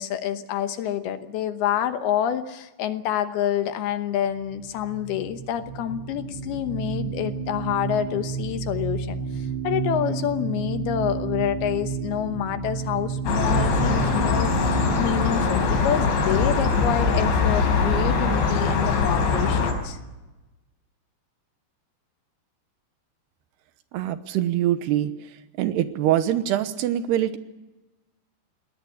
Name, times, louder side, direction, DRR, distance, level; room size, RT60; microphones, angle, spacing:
voice 1, 0.0-20.0, left 10 dB, 70° left, 9 dB, 2.8 m, -28 dB
sound 1, 4.4-17.6, right 6 dB, 35° right, 4.0 m, -32 dB
sound 2, 13.3-19.7, left 4 dB, 90° left, 6.4 m, -22 dB
voice 2, 23.9-25.1 25.6-27.4, right 12 dB, 75° right, 11 dB, 3.0 m, -23 dB
21.5 x 18.0 x 9.8 m, 1.1 s
omnidirectional pair, 5.0 m